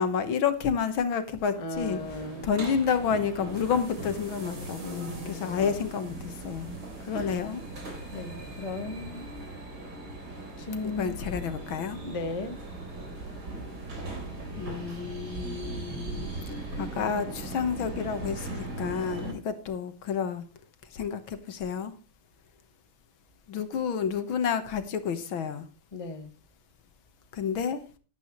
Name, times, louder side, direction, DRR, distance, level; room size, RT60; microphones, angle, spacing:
voice 1, 0.0-2.0 2.4-6.7 7.1-7.6 10.8-12.0 14.6-20.4 20.9-21.9 23.5-25.7 27.3-27.8, left 7 dB, 70° left, 2.0 m, -30 dB
voice 2, 1.5-2.5 4.7-5.6 7.1-7.4 8.1-9.3 10.6-11.2 12.0-12.6 25.9-26.3, left 2 dB, 20° left, 1.1 m, -36 dB
sound 1, 1.7-19.3, right 2 dB, 50° right, 4.1 m, -39 dB
12.5 x 11.5 x 3.1 m
omnidirectional pair, 2.3 m